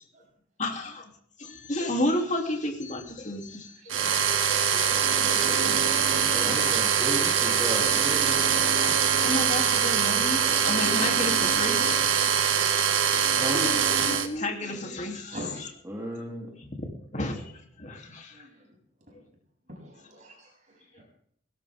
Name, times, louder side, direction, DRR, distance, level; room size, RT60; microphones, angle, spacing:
voice 1, 0.6-1.1 1.4-4.1 4.5-6.7 8.6-8.9 9.2-12.2 13.1-15.4 16.0-16.2 16.6-18.5 20.9-21.0, left 1 dB, 40° left, 2 dB, 3.3 m, -33 dB
voice 2, 3.7-4.1 15.3-15.7 18.3-18.7 19.1-19.2 19.7-21.0, equal, 40° right, -1 dB, 8.0 m, -45 dB
sound 1, 3.9-14.3, right 7 dB, 90° right, 2.0 m, -23 dB
voice 3, 6.3-8.4 13.4-13.7 15.9-16.5, right 1 dB, 15° right, -3 dB, 3.3 m, -34 dB
19.5 x 17.5 x 3.8 m, 0.63 s
head